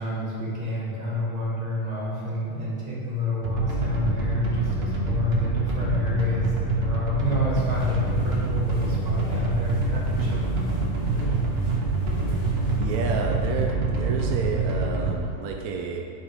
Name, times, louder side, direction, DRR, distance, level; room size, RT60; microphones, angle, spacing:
voice 1, 0.0-10.7, left 2 dB, 25° right, -6 dB, 1.8 m, -29 dB
sound 1, 3.4-15.1, right 3 dB, 45° right, 1.1 m, -25 dB
sound 2, 7.5-12.8, left 1 dB, 70° left, 2.4 m, -36 dB
voice 2, 12.8-16.1, right 5 dB, 70° right, 1 dB, 1.0 m, -30 dB
10.0 x 6.3 x 3.6 m, 2.4 s
omnidirectional pair, 1.8 m